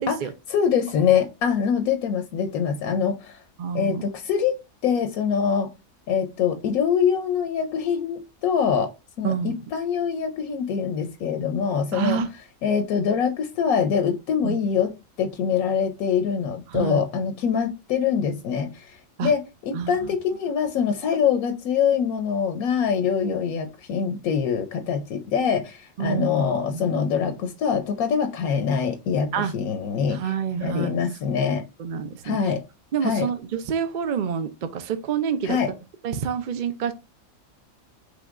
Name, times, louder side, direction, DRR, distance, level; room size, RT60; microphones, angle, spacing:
voice 1, 0.0-0.3 3.6-4.0 9.2-9.5 11.9-12.3 14.4-14.6 16.7-17.0 19.2-19.3 19.7-20.2 23.3-23.4 26.0-27.1 29.3-29.5 30.1-30.9 31.8-32.5 32.9-35.8 36.0-36.9, right 7 dB, 70° right, 0.4 m, -28 dB
voice 2, 0.5-3.4 3.7-4.6 4.8-5.7 6.1-8.9 9.2-12.2 12.6-14.9 15.2-19.0 19.2-30.2 30.6-31.6 32.2-32.6 33.0-33.3 35.4-35.7, left 7 dB, 85° left, 1.1 m, -24 dB
5.1 x 3.1 x 2.4 m
omnidirectional pair, 1.5 m